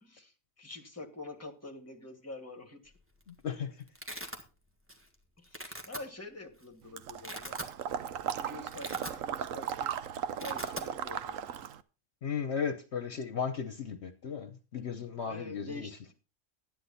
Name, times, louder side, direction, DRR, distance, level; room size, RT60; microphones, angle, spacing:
voice 1, 0.0-2.9 5.4-7.6 8.3-9.9 10.4-11.5 13.4-13.6 15.2-16.1, left 2 dB, 10° left, 5 dB, 1.8 m, -46 dB
Domestic sounds home sounds, 2.9-3.3 3.6-4.4 4.9-5.1 5.4-6.0 6.6-6.7 7.1-7.7 8.2-8.3 8.6-9.5 9.8-10.0 10.2-10.9, equal, 10° right, 1.6 m, -42 dB
voice 2, 3.3-3.7 12.2-15.9, left 7 dB, 60° left, 8 dB, 1.2 m, -35 dB
Water / Liquid, 7.0-11.8, right 9 dB, 85° right, 1.1 m, -37 dB
12.0 x 10.0 x 4.1 m, 0.32 s
omnidirectional pair, 1.3 m